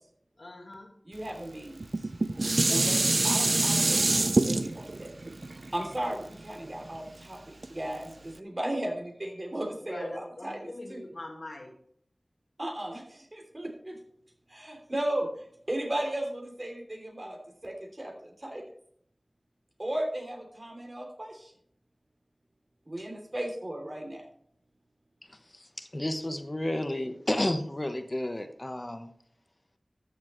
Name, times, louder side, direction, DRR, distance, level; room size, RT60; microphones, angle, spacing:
voice 1, 0.4-0.9 9.8-11.7, left 2 dB, 70° left, 2 dB, 1.7 m, -43 dB
voice 2, 1.0-1.8 2.7-5.1 5.7-11.0 12.6-14.0 14.5-17.4 17.6-18.7 19.8-21.5 22.9-24.2, right 1 dB, 45° right, 2 dB, 3.0 m, -35 dB
Dishes pots and pans, 1.8-7.1 7.6-7.7, right 2 dB, 65° right, 0.5 m, -26 dB
voice 3, 25.3-29.1, left 1 dB, 35° left, 8 dB, 1.0 m, -32 dB
13.5 x 7.2 x 3.2 m, 0.65 s
wide cardioid pair, 40°, 0 cm